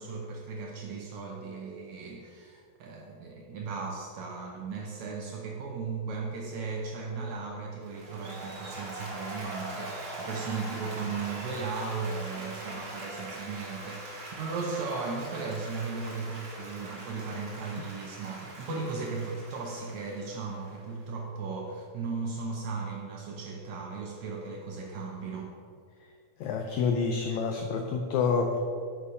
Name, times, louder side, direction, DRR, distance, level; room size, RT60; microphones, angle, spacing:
voice 1, 0.0-25.5, right 4 dB, 75° right, 0 dB, 1.7 m, -36 dB
Applause, 7.8-21.0, right 1 dB, 55° right, 3.3 m, -42 dB
voice 2, 26.4-28.6, left 5 dB, 90° left, 4 dB, 1.6 m, -28 dB
8.4 x 6.3 x 5.5 m, 2.2 s
omnidirectional pair, 4.1 m